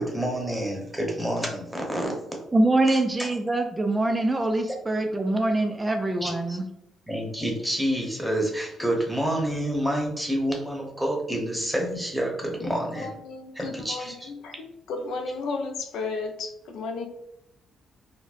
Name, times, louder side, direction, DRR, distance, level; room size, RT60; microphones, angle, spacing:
voice 1, 0.0-2.1 2.9-3.0 6.2-6.6 7.1-13.2 13.5-14.3, right 1 dB, ahead, -1 dB, 0.8 m, -28 dB
voice 2, 2.5-6.7, right 2 dB, 20° right, 4 dB, 0.3 m, -24 dB
voice 3, 14.9-16.5 16.7-17.0, left 3 dB, 80° left, 5 dB, 0.4 m, -31 dB
3.9 x 2.1 x 2.5 m, 0.82 s
cardioid pair, 90°, 0 cm